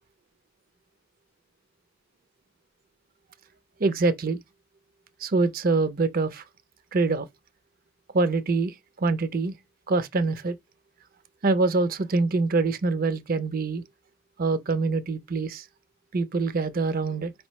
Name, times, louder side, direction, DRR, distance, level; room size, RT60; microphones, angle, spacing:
voice 1, 3.8-4.4 5.2-6.4 6.9-7.3 8.1-9.5 9.9-10.6 11.4-13.8 14.4-15.6 16.1-17.3, right 3 dB, 50° right, 0.6 m, -25 dB
4.8 x 3.1 x 3.1 m
head